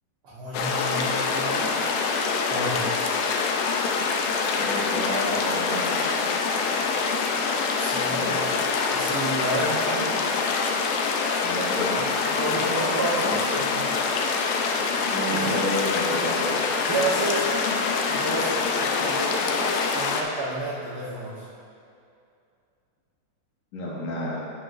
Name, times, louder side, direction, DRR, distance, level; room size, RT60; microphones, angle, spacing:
voice 1, 0.2-1.7 2.5-2.9 7.8-8.4 8.9-10.2 12.3-13.9 15.3-15.6 16.8-17.5 18.1-21.5, right 2 dB, 55° right, -10 dB, 1.7 m, -30 dB
sound 1, 0.5-20.2, left 4 dB, 80° left, 2.2 m, -25 dB
voice 2, 4.5-6.1 8.0-8.4 11.4-12.2 12.5-12.6 13.2-13.8 14.7-16.6 23.7-24.4, left 1 dB, 60° left, -6 dB, 2.8 m, -31 dB
17.0 x 6.0 x 2.6 m, 2.5 s
omnidirectional pair, 3.6 m